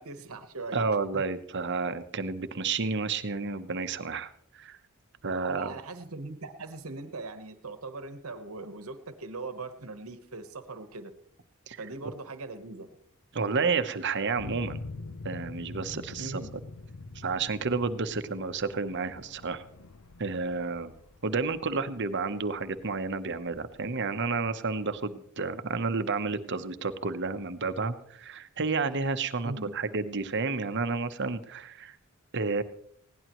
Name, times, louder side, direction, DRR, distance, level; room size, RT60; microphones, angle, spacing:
voice 1, 0.0-0.8 1.1-1.2 5.4-11.1 11.8-12.9 16.2-16.5 29.4-29.7, right 3 dB, 75° right, 9 dB, 1.2 m, -40 dB
voice 2, 0.7-4.8 5.2-5.7 11.7-11.9 13.3-14.8 15.2-16.4 17.1-19.6 20.2-20.9 21.2-32.0 32.3-32.6, right 4 dB, 55° right, 10 dB, 0.9 m, -31 dB
sound 1, 14.4-25.0, left 3 dB, 75° left, 0.7 m, -45 dB
20.5 x 17.0 x 3.1 m, 0.65 s
head